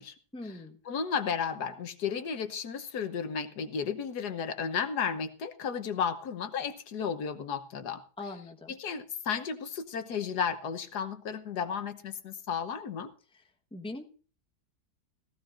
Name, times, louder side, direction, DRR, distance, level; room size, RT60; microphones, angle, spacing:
voice 1, 0.3-0.8 8.2-8.8 13.3-13.4 13.7-14.0, left 2 dB, 5° left, 4 dB, 1.1 m, -41 dB
voice 2, 0.9-8.0 8.7-13.1, left 6 dB, 75° left, 9 dB, 1.6 m, -33 dB
16.5 x 16.0 x 2.5 m, 0.39 s
omnidirectional pair, 1.7 m